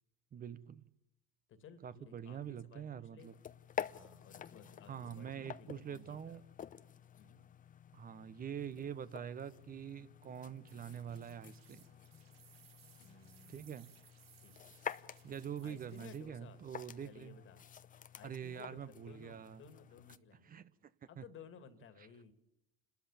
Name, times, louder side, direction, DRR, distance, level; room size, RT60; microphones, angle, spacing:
voice 1, 0.3-0.8 1.8-3.3 4.9-6.4 7.9-11.8 13.5-13.9 15.2-17.4 18.2-19.6 20.5-20.9 21.2-21.3, right 8 dB, 30° right, 1.1 m, -45 dB
voice 2, 1.5-3.3 3.9-6.4 7.2-7.4 13.0-13.6 14.4-14.7 15.6-16.6 17.0-17.6 18.1-20.6 21.0-22.3, left 6 dB, 45° left, 2.1 m, -57 dB
sound 1, 3.2-20.2, left 8 dB, 30° left, 0.8 m, -50 dB
sound 2, 10.6-16.2, right 8 dB, 85° right, 2.1 m, -65 dB
29.5 x 13.0 x 7.2 m
hypercardioid pair, 80°, 29 cm